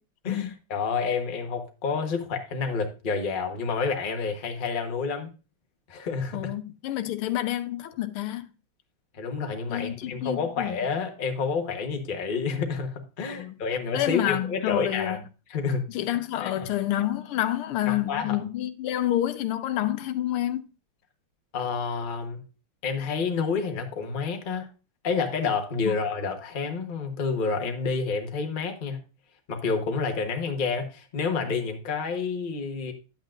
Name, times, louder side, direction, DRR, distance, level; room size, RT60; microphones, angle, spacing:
voice 1, 0.2-5.3 5.9-6.5 9.1-15.2 15.5-15.9 16.4-16.7 17.8-18.4 21.5-22.4 22.8-24.7 25.0-29.0 29.5-32.9, left 5 dB, 30° left, 1.0 m, -29 dB
voice 2, 6.3-8.4 9.7-10.8 13.3-13.5 13.9-15.2 15.9-20.7 25.8-25.9, left 13 dB, 85° left, 1.6 m, -28 dB
10.5 x 8.2 x 2.5 m
omnidirectional pair, 2.4 m